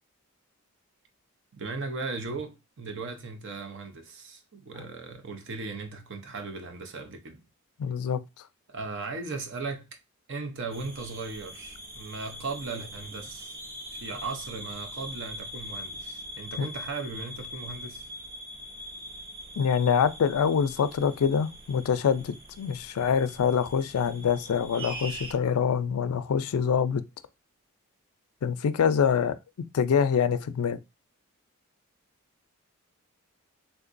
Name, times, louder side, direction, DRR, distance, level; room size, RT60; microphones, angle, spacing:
voice 1, 1.5-7.4 8.7-10.0 10.3-13.6 13.9-18.1, right 3 dB, 60° right, 0.7 m, -37 dB
voice 2, 7.8-8.2 16.6-16.7 19.6-27.0 28.4-29.4 29.7-30.8, left 7 dB, 90° left, 0.4 m, -25 dB
sound 1, 10.7-25.3, equal, 25° right, 0.7 m, -42 dB
3.5 x 2.9 x 2.5 m
head